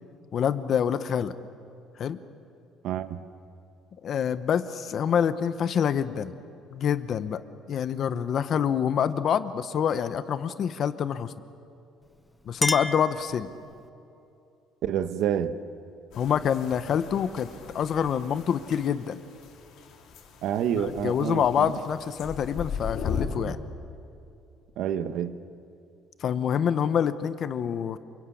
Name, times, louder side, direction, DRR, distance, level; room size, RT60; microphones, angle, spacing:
voice 1, 0.3-1.3 2.0-2.2 4.0-6.4 6.7-7.4 7.7-11.3 12.5-13.5 16.2-19.2 20.7-23.6 26.2-28.0, left 8 dB, 40° left, 0.9 m, -26 dB
voice 2, 2.8-3.2 14.8-15.5 20.4-21.7 24.8-25.3, right 9 dB, 60° right, 1.1 m, -28 dB
Chink clink, 12.0-13.9, left 2 dB, 10° left, 0.6 m, -32 dB
sound 1, 16.1-23.3, left 6 dB, 60° left, 3.9 m, -38 dB
28.5 x 22.5 x 8.5 m
cardioid pair, 165°, 0 cm